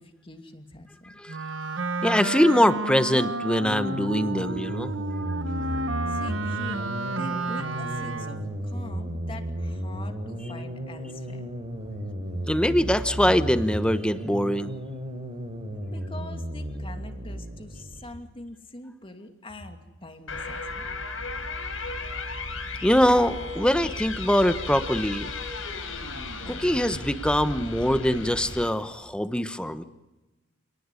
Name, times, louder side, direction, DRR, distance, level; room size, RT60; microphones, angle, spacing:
voice 1, 0.0-1.1 6.1-11.5 15.7-20.9, left 2 dB, 25° left, 6 dB, 2.4 m, -44 dB
Wind instrument woodwind instrument, 1.3-8.5, right 2 dB, 65° right, 1.3 m, -31 dB
voice 2, 2.0-5.3 12.5-14.7 22.8-25.3 26.5-29.8, equal, 5° left, 11 dB, 1.1 m, -23 dB
sound 1, 3.6-18.1, equal, 30° right, 3.4 m, -34 dB
sound 2, 20.3-28.7, left 3 dB, 80° left, 4.9 m, -35 dB
28.5 x 19.0 x 9.8 m, 1.1 s
head